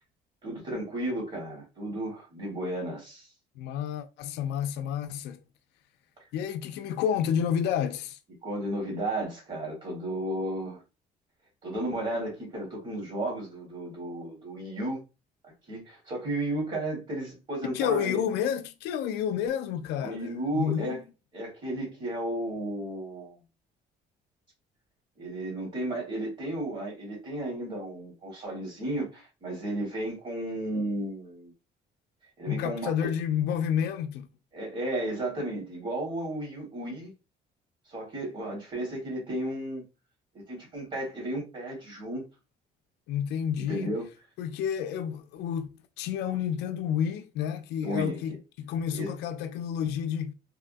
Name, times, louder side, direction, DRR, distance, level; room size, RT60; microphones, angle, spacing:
voice 1, 0.4-3.3 8.4-10.8 11.6-15.0 15.7-18.2 20.0-21.0 21.3-23.4 25.2-31.5 32.4-33.1 34.5-37.1 37.9-39.8 40.3-42.2 43.5-44.0 47.8-48.2 48.9-49.1, right 1 dB, 40° right, 1.5 m, -33 dB
voice 2, 3.6-5.4 6.3-8.2 17.7-21.0 32.5-34.3 43.1-43.9 44.4-50.3, left 9 dB, 85° left, 0.4 m, -30 dB
3.4 x 2.3 x 2.5 m
cardioid pair, 110°, 17 cm